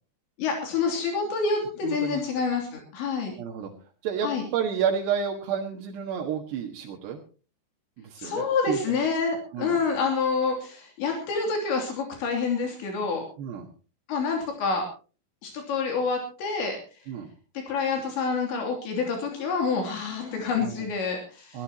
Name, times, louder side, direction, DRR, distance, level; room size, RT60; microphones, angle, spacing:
voice 1, 0.4-3.3 4.2-4.4 8.2-13.2 14.1-14.9 15.4-16.8 17.6-21.6, left 5 dB, 75° left, 2 dB, 5.2 m, -27 dB
voice 2, 1.8-2.2 3.3-3.7 4.0-7.2 8.0-9.0 9.5-9.8 13.4-13.7 17.1-17.3 20.6-20.9 21.5-21.6, right 7 dB, 70° right, 0 dB, 3.6 m, -30 dB
23.5 x 15.0 x 2.9 m, 0.36 s
omnidirectional pair, 5.2 m